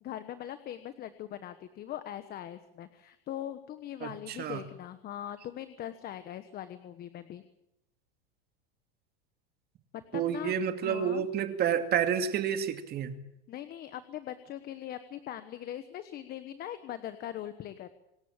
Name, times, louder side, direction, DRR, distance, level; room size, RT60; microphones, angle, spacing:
voice 1, 0.0-7.4 9.9-10.6 10.8-11.2 13.5-17.9, left 11 dB, 30° left, 11 dB, 1.3 m, -41 dB
voice 2, 4.0-4.6 10.1-13.1, right 8 dB, 35° right, 7 dB, 2.4 m, -30 dB
26.0 x 13.5 x 8.9 m, 0.84 s
supercardioid pair, 145°, 29 cm